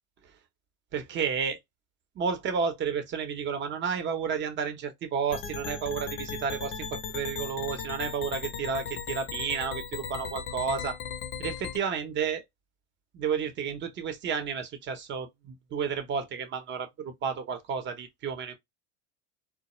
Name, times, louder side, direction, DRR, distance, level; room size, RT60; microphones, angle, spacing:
voice 1, 0.9-1.6 2.2-11.0 11.4-12.4 13.1-18.5, right 6 dB, 30° right, 0.8 m, -31 dB
sound 1, 5.3-11.8, left 6 dB, 35° left, 0.6 m, -37 dB
2.3 x 2.0 x 2.9 m
supercardioid pair, 120°, 35 cm